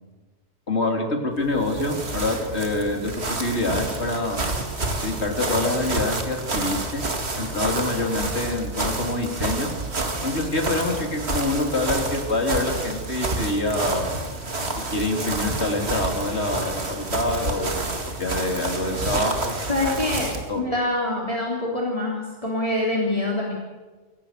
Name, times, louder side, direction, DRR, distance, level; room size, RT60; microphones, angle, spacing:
voice 1, 0.7-4.4 5.0-7.0 7.4-9.7 10.2-14.0 14.9-17.8 18.2-19.6 20.5-20.6, left 2 dB, 70° left, 2 dB, 3.9 m, -26 dB
sound 1, 1.4-20.5, right 2 dB, 65° right, 2.5 m, -29 dB
voice 2, 19.7-23.5, left 2 dB, 30° left, -2 dB, 3.4 m, -25 dB
27.5 x 17.5 x 6.8 m, 1.3 s
omnidirectional pair, 1.2 m